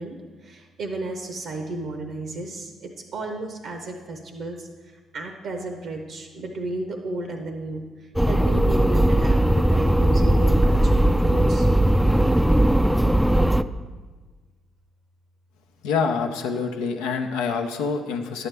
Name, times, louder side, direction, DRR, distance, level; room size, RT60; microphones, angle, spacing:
voice 1, 0.0-11.7, right 2 dB, 75° right, 4 dB, 0.8 m, -34 dB
sound 1, 8.2-13.6, right 1 dB, ahead, 0.3 m, -18 dB
voice 2, 15.8-18.5, left 5 dB, 90° left, 5 dB, 0.6 m, -26 dB
10.5 x 7.8 x 3.3 m, 1.4 s
supercardioid pair, 55°, 0 cm